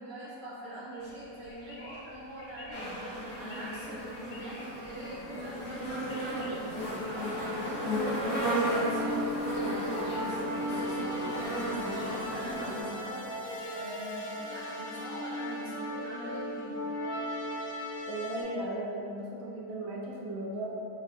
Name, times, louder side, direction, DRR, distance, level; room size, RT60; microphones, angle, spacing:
voice 1, 0.0-2.9 3.4-8.0 8.5-13.3 13.7-16.9, equal, 85° right, -11 dB, 1.8 m, -43 dB
sound 1, 1.0-12.6, left 2 dB, 90° left, 1.3 m, -53 dB
sound 2, 2.7-12.8, equal, 55° left, 0.4 m, -34 dB
sound 3, 8.2-18.4, equal, 75° left, 1.2 m, -37 dB
voice 2, 18.0-20.7, right 1 dB, 70° right, -3 dB, 0.9 m, -36 dB
5.2 x 2.2 x 2.4 m, 2.8 s
omnidirectional pair, 1.8 m